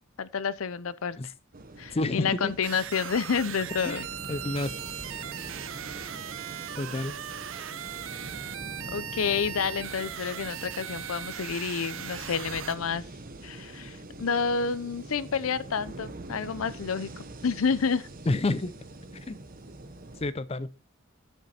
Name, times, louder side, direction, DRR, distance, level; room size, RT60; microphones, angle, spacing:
voice 1, 0.2-1.2 1.8-4.1 8.9-13.0 13.4-18.1, left 6 dB, 85° left, 0.6 m, -29 dB
sound 1, 1.5-20.3, right 2 dB, 45° right, 1.1 m, -44 dB
voice 2, 1.9-2.5 3.8-4.0 4.3-4.7 6.8-7.1 18.3-18.7 19.3-19.4 20.2-20.7, left 2 dB, 30° left, 0.5 m, -29 dB
sound 2, 2.6-12.7, right 9 dB, 65° right, 0.6 m, -39 dB
8.1 x 6.7 x 4.3 m
head